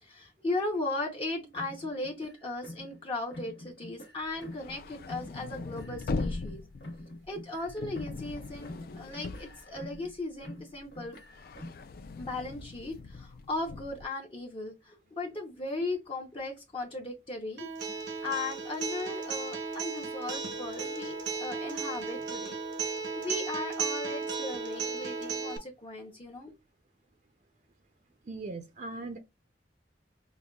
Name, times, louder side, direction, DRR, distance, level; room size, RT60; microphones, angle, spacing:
voice 1, 0.0-6.6 7.3-11.2 12.2-17.7 18.2-22.6 22.8-26.5, left 2 dB, 30° left, 0.7 m, -37 dB
sound 1, 1.5-3.0 3.3-4.8 5.1-8.4 8.6-10.1 10.4-11.9, left 1 dB, 80° left, 1.2 m, -46 dB
sound 2, 4.3-10.4 10.7-14.0, left 3 dB, 55° left, 0.3 m, -40 dB
Acoustic guitar, 17.6-25.6, right 5 dB, 80° right, 0.8 m, -35 dB
voice 2, 28.3-29.2, right 3 dB, 45° right, 0.5 m, -39 dB
5.3 x 2.2 x 2.3 m
head